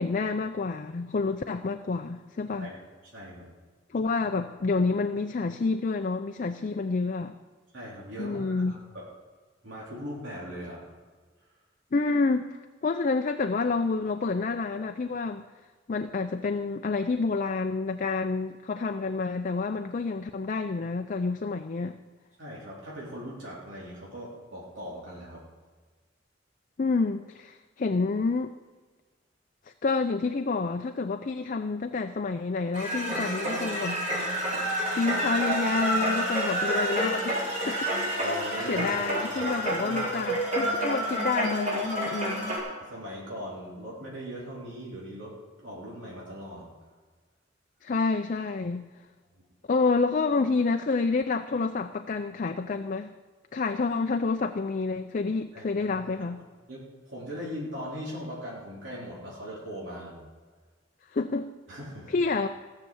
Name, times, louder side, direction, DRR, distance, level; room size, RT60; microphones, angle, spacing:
voice 1, 0.0-2.7 3.9-7.3 8.2-8.8 11.9-15.4 15.9-22.0 26.8-28.5 29.8-37.9 38.2-38.4 38.7-42.6 47.8-48.9 49.7-53.1 53.5-56.4 61.1-61.5 62.1-62.5, left 4 dB, 45° left, 6 dB, 0.4 m, -29 dB
voice 2, 3.1-3.5 7.7-9.0 9.6-10.8 22.4-25.4 38.2-38.9 39.2-40.0 42.8-46.7 55.5-56.3 56.7-60.2 61.7-62.1, equal, 80° right, -6 dB, 3.4 m, -40 dB
sound 1, 32.7-42.6, right 1 dB, 40° right, 3.9 m, -29 dB
16.0 x 6.8 x 7.0 m, 1.4 s
head